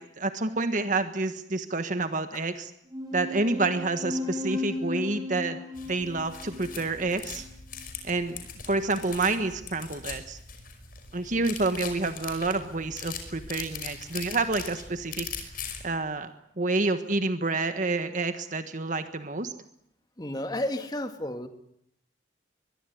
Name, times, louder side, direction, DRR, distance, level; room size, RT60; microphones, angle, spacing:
voice 1, 0.0-2.7 3.1-5.6 5.9-7.4 8.0-10.4 11.1-15.3 15.8-19.5, right 3 dB, 45° right, 9 dB, 1.5 m, -28 dB
sound 1, 2.9-7.9, left 3 dB, 25° right, 5.5 m, -35 dB
sound 2, 5.7-15.9, left 6 dB, 55° left, 5.4 m, -41 dB
voice 2, 20.2-21.5, left 1 dB, 25° left, 7 dB, 2.2 m, -32 dB
23.0 x 22.5 x 9.5 m, 0.72 s
head